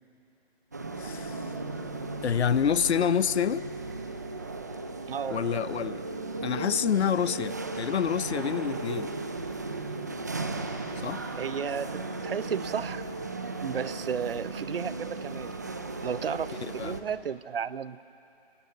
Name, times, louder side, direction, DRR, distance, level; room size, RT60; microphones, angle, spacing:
sound 1, 0.7-17.0, right 3 dB, 15° right, 0.5 m, -36 dB
voice 1, 1.0-1.4 2.2-3.7 5.3-6.0 6.4-9.1 11.0-11.2 16.8-17.0, left 8 dB, 85° left, 17 dB, 0.7 m, -27 dB
voice 2, 5.1-5.4 11.4-13.0 13.6-15.5 16.0-18.0, right 7 dB, 60° right, 17 dB, 0.7 m, -33 dB
29.0 x 20.0 x 6.7 m, 2.9 s
hypercardioid pair, 165°, 32 cm